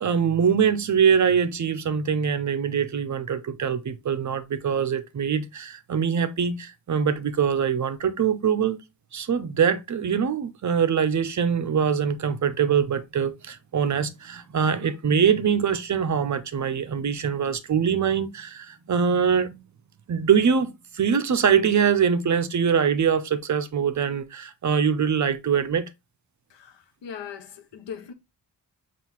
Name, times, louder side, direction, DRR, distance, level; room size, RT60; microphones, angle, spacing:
voice 1, 0.0-8.8 9.1-19.6 20.1-25.9, right 7 dB, 45° right, 0.5 m, -23 dB
voice 2, 26.5-28.1, left 7 dB, 80° left, 0.7 m, -39 dB
5.5 x 2.5 x 2.9 m
wide cardioid pair, 115°, 43 cm